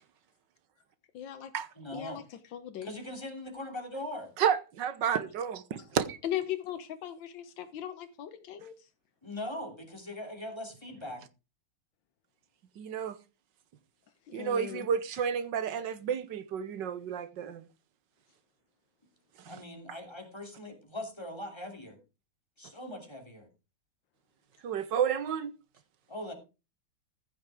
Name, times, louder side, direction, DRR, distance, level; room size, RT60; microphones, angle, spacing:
voice 1, 1.1-1.5 1.9-2.9 6.2-8.9 14.3-14.9, left 11 dB, 85° left, 1.6 m, -38 dB
voice 2, 1.8-2.2 2.8-4.3 9.2-11.2 19.5-22.0 22.6-23.5 26.1-26.3, left 1 dB, 15° left, 3.0 m, -41 dB
voice 3, 4.4-6.2 12.8-13.2 14.3-17.7 19.4-19.5 24.6-25.5, right 8 dB, 75° right, 1.6 m, -31 dB
15.0 x 6.5 x 4.9 m
omnidirectional pair, 2.0 m